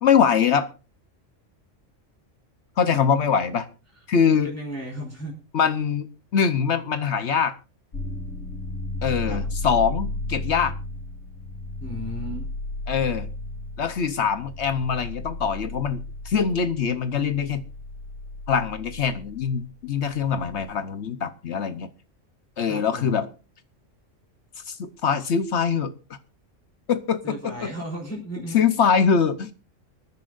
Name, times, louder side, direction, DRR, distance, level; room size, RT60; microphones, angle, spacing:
voice 1, 0.0-0.7 2.8-3.7 4.1-4.5 5.5-7.6 9.0-10.7 12.9-13.3 13.8-17.6 18.5-21.9 22.6-23.3 24.7-25.9 26.9-27.7 28.5-29.5, left 6 dB, 65° left, 11 dB, 1.1 m, -23 dB
voice 2, 4.3-5.3 9.3-9.4 11.8-12.5 22.7-23.2 27.2-28.6, right 1 dB, 10° left, -3 dB, 3.5 m, -35 dB
sound 1, 7.9-20.7, left 2 dB, 85° left, 3.6 m, -34 dB
25.0 x 10.0 x 2.5 m, 0.32 s
omnidirectional pair, 1.3 m